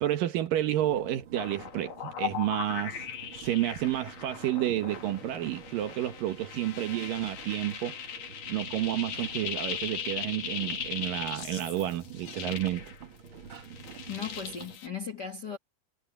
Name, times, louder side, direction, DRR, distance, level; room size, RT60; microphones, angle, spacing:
voice 1, 0.0-3.0 3.3-8.0 8.5-12.8, right 13 dB, 70° right, 2.7 m, -30 dB
sound 1, 0.7-14.8, right 6 dB, 45° right, 1.8 m, -49 dB
sound 2, 1.4-13.3 13.6-14.9, left 8 dB, 60° left, 3.8 m, -39 dB
voice 2, 14.1-15.6, left 6 dB, 40° left, 1.6 m, -37 dB
omnidirectional pair, 4.4 m